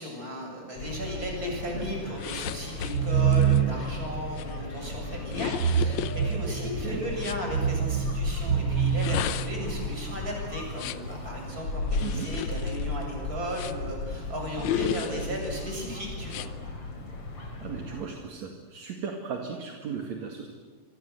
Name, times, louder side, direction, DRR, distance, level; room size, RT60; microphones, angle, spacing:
voice 1, 0.0-16.5, equal, 25° right, 1 dB, 7.8 m, -36 dB
sound 1, 0.7-18.0, left 2 dB, 50° left, 4.7 m, -36 dB
sound 2, 2.2-7.5 8.8-11.1 11.9-14.0 14.6-15.6 16.3-16.5, left 11 dB, 70° left, 2.1 m, -35 dB
sound 3, 2.8-4.1 5.5-6.9 7.4-9.9, right 8 dB, 85° right, 1.0 m, -26 dB
voice 2, 12.0-12.3 14.6-15.4 17.6-20.5, right 6 dB, 65° right, 2 dB, 3.2 m, -37 dB
27.0 x 25.0 x 8.0 m, 1.4 s
omnidirectional pair, 3.5 m